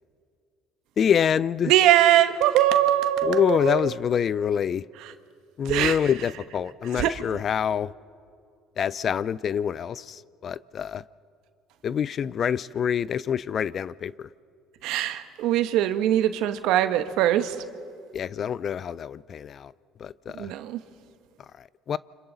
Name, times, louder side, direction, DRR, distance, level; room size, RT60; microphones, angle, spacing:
voice 1, 1.0-1.7 3.2-4.8 5.6-7.9 8.8-11.0 11.8-14.3 18.1-19.7 20.0-20.5 21.4-22.0, left 8 dB, 45° left, 0.4 m, -26 dB
voice 2, 1.7-3.9 5.7-6.0 6.9-7.2 14.8-17.6 20.3-20.8, right 12 dB, 75° right, 1.1 m, -22 dB
29.5 x 25.5 x 4.0 m
supercardioid pair, 80°, 0 cm